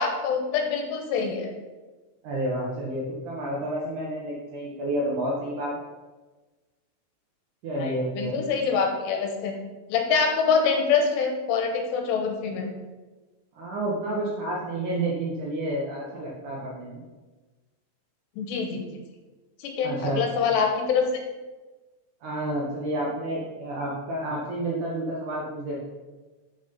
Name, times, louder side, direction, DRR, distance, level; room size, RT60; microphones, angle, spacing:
voice 1, 0.0-1.5 7.8-9.5 9.9-12.7 18.4-18.9 19.6-21.0, left 5 dB, 80° left, 3 dB, 3.1 m, -25 dB
voice 2, 2.2-5.7 7.6-8.4 13.5-17.0 19.8-20.3 22.2-25.8, right 1 dB, 65° right, -4 dB, 2.1 m, -30 dB
6.9 x 6.1 x 5.2 m, 1.2 s
omnidirectional pair, 4.9 m